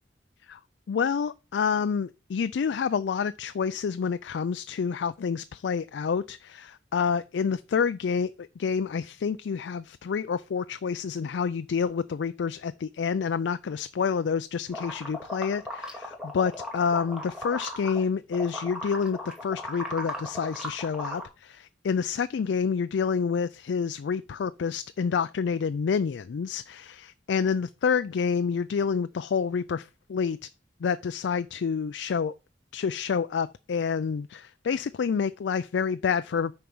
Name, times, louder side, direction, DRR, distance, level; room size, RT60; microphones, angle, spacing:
voice 1, 0.9-30.4 30.8-32.3 32.7-36.5, left 6 dB, 85° left, 0.4 m, -28 dB
sound 1, 14.7-18.0 18.3-21.2, left 1 dB, 5° right, 2.0 m, -36 dB
9.4 x 4.5 x 5.4 m
head